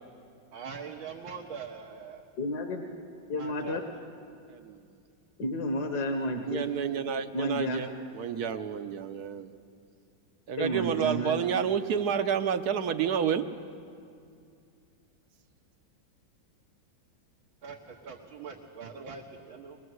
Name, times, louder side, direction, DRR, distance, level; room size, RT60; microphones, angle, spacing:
voice 1, 0.5-2.3 3.3-3.8 17.6-19.8, right 6 dB, 90° right, -1 dB, 2.2 m, -42 dB
voice 2, 2.4-2.9 3.3-3.8 5.4-6.6 7.3-7.8 10.6-11.4, equal, 60° left, 4 dB, 1.9 m, -31 dB
voice 3, 6.5-7.9 8.1-9.5 10.5-13.5, right 8 dB, 65° right, 10 dB, 1.2 m, -29 dB
22.5 x 21.5 x 7.9 m, 2.4 s
omnidirectional pair, 2.1 m